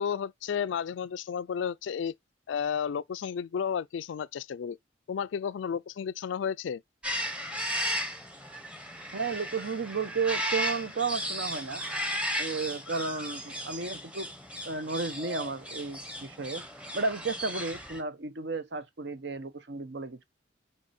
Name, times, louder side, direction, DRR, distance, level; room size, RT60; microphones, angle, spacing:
voice 1, 0.0-2.1 2.5-4.8 5.1-6.8, left 7 dB, 75° left, 0.3 m, -32 dB
sound 1, 7.0-18.0, equal, 5° right, 0.9 m, -35 dB
voice 2, 9.1-11.8 12.4-14.3 14.6-16.6 16.9-20.2, right 4 dB, 65° right, 0.8 m, -33 dB
6.1 x 4.5 x 4.2 m
head